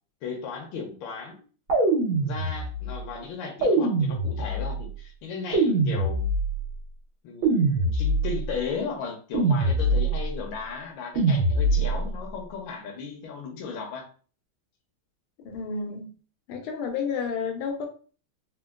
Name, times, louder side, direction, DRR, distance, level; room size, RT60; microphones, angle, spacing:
voice 1, 0.2-1.4 2.2-6.3 7.2-14.1, left 5 dB, 70° left, 1 dB, 1.3 m, -36 dB
sound 1, 1.7-2.9 3.6-4.8 5.5-6.7 7.4-8.5 9.3-10.3 11.2-12.1, right 2 dB, 90° right, 1.9 m, -23 dB
voice 2, 15.4-16.1 16.5-17.9, left 5 dB, 90° left, 3 dB, 1.6 m, -31 dB
4.3 x 2.2 x 2.3 m, 0.39 s
omnidirectional pair, 2.3 m